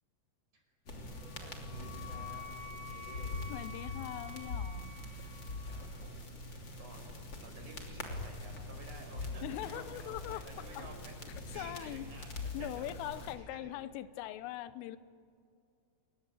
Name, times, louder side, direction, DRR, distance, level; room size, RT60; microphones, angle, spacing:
sound 1, 0.9-13.3, left 2 dB, 30° left, 2.8 m, -43 dB
Wind instrument woodwind instrument, 1.2-5.9, left 5 dB, 60° left, 8.7 m, -49 dB
voice 1, 1.4-3.4 5.7-7.0 7.3-12.3 12.6-13.7, right 3 dB, 40° right, 2 dB, 6.6 m, -53 dB
voice 2, 3.5-5.2 9.4-10.9 11.5-12.1 12.5-15.0, left 14 dB, 90° left, 14 dB, 3.5 m, -42 dB
29.5 x 22.5 x 9.1 m, 2.4 s
omnidirectional pair, 5.7 m